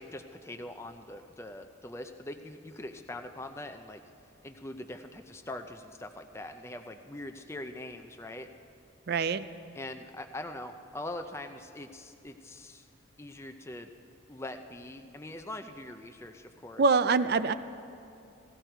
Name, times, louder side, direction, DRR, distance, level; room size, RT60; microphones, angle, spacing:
voice 1, 0.0-4.0 4.4-8.5 9.8-12.9 13.2-13.9 14.3-16.8, left 1 dB, 15° left, 6 dB, 0.5 m, -42 dB
voice 2, 9.1-9.5 16.8-17.5, right 4 dB, 50° right, 13 dB, 0.4 m, -24 dB
17.0 x 14.0 x 4.5 m, 2.6 s
head